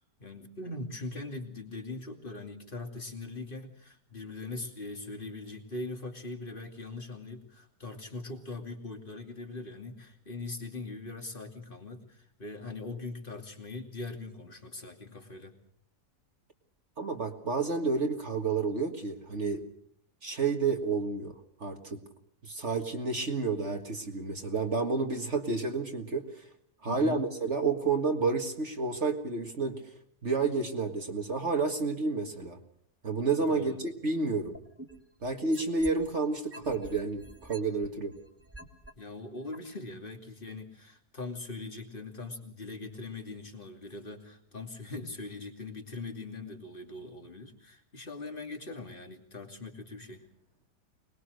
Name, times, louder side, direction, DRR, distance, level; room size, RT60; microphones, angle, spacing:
voice 1, 0.0-15.6 26.9-27.2 33.5-33.8 39.0-50.2, left 3 dB, 30° left, 4 dB, 2.8 m, -41 dB
voice 2, 17.0-19.6 20.2-21.3 21.6-22.0 22.4-26.4 26.8-29.8 30.2-32.6 33.0-34.6 35.2-38.1, right 4 dB, 45° right, 4 dB, 2.0 m, -30 dB
sound 1, 34.5-36.1 36.5-38.9 39.5-39.6, right 1 dB, 10° right, 2.4 m, -47 dB
25.0 x 20.5 x 6.5 m, 0.66 s
omnidirectional pair, 1.7 m